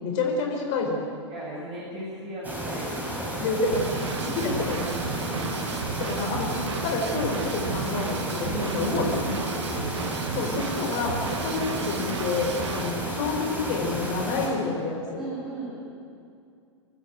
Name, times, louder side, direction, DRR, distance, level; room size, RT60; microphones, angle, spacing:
voice 1, 0.0-1.1 3.4-3.8 4.2-4.9 6.0-8.5 8.7-9.1 10.3-15.2, left 4 dB, 40° left, 0 dB, 4.7 m, -28 dB
voice 2, 1.3-3.1 5.2-5.5 8.5-10.1 15.2-15.7, right 1 dB, 35° right, -6 dB, 7.4 m, -36 dB
sound 1, 2.4-14.5, right 1 dB, 10° right, 6.0 m, -32 dB
Drum kit / Drum, 3.7-12.9, right 6 dB, 65° right, 1.5 m, -34 dB
26.0 x 13.0 x 8.8 m, 2.4 s
figure-of-eight pair, 100°, 16 cm